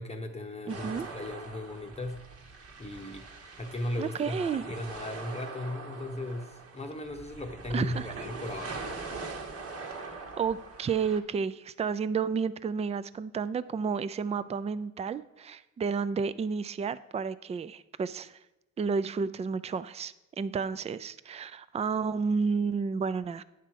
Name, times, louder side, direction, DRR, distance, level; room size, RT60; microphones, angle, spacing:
voice 1, 0.0-2.2 2.8-3.2 3.5-8.8, left 1 dB, 20° left, 3 dB, 0.9 m, -37 dB
voice 2, 0.7-1.0 4.0-4.6 7.7-8.1 10.4-18.4 18.8-23.4, right 5 dB, 20° right, 15 dB, 0.4 m, -31 dB
sound 1, 0.7-11.2, right 4 dB, 50° right, 1.5 m, -42 dB
9.7 x 5.9 x 4.6 m, 0.98 s
cardioid pair, 90°, 30 cm